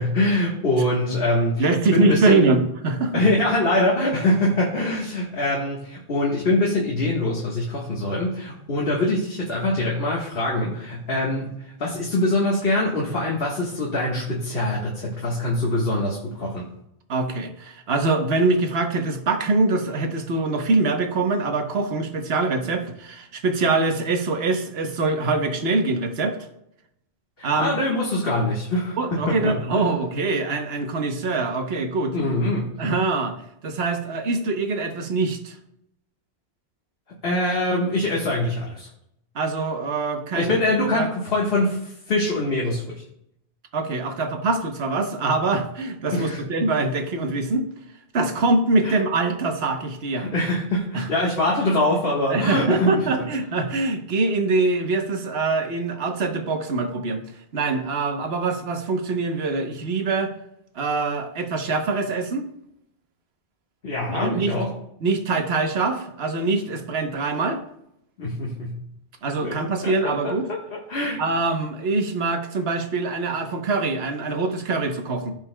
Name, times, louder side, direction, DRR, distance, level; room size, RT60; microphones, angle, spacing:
voice 1, 0.0-2.5 3.1-16.7 27.4-29.8 32.1-32.7 37.2-38.9 40.3-42.9 46.1-46.4 48.8-49.0 50.1-53.1 63.8-64.7 68.2-68.8 69.4-69.5 69.8-70.3 70.7-71.2, left 1 dB, 65° left, -3 dB, 1.6 m, -24 dB
voice 2, 1.6-3.2 17.1-26.4 27.4-27.8 29.0-32.1 32.8-33.4 33.6-35.6 39.3-40.5 40.9-41.1 43.7-47.7 48.1-50.3 50.9-51.1 52.3-57.2 57.5-60.3 60.7-62.5 64.1-64.5 65.0-67.6 69.2-70.5 71.2-75.3, right 3 dB, 70° right, 5 dB, 1.2 m, -24 dB
15.5 x 5.3 x 2.2 m, 0.77 s
omnidirectional pair, 1.1 m